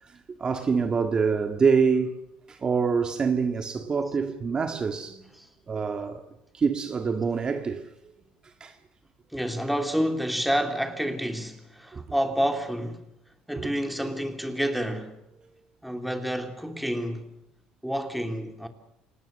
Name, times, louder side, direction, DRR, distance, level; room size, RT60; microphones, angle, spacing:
voice 1, 0.0-2.2 2.5-5.3 5.7-6.2 6.5-7.8 8.6-8.8 11.9-12.0 13.6-13.7, right 5 dB, 30° right, 1.7 m, -26 dB
voice 2, 9.3-13.0 13.5-15.1 15.8-17.3 17.8-18.7, equal, ahead, 3.1 m, -29 dB
29.0 x 19.5 x 6.6 m
cardioid pair, 120°, 3 cm